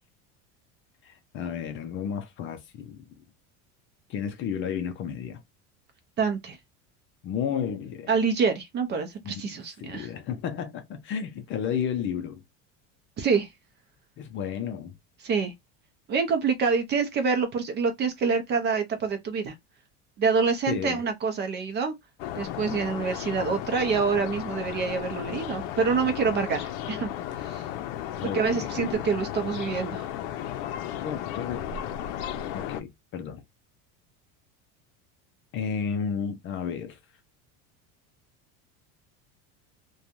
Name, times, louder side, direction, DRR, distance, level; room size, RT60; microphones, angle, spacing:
voice 1, 1.0-3.2 4.1-5.4 7.2-8.2 9.2-12.4 14.2-14.9 20.7-21.0 28.2-28.9 31.0-31.6 32.5-33.4 35.5-37.0, left 7 dB, 35° left, 0.5 m, -32 dB
voice 2, 6.2-6.6 8.1-10.1 13.2-13.5 15.2-15.5 16.1-19.5 20.2-21.9 22.4-27.1 27.4-27.6 28.3-30.0, right 5 dB, 30° right, 0.6 m, -26 dB
sound 1, 22.2-32.8, left 11 dB, 80° left, 0.6 m, -34 dB
3.0 x 2.3 x 2.4 m
cardioid pair, 160°, 35 cm